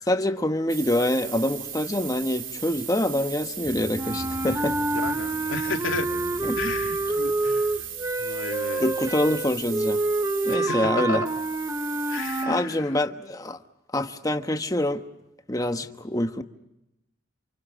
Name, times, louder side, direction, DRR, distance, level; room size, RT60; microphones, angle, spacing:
voice 1, 0.1-4.8 6.4-6.6 8.8-10.0 10.4-11.2 12.4-13.6 13.9-15.0 15.5-16.4, left 1 dB, 20° left, 1.1 m, -25 dB
sound 1, 0.7-10.6 11.3-12.5, right 9 dB, 80° right, 2.3 m, -37 dB
sound 2, 3.6-8.2, equal, 35° right, 2.4 m, -43 dB
sound 3, 3.9-12.6, right 2 dB, 15° right, 0.9 m, -27 dB
voice 2, 4.9-6.1 6.6-7.7 8.2-8.9 10.4-11.3 12.1-13.0, left 4 dB, 85° left, 2.3 m, -33 dB
29.0 x 27.5 x 6.3 m
head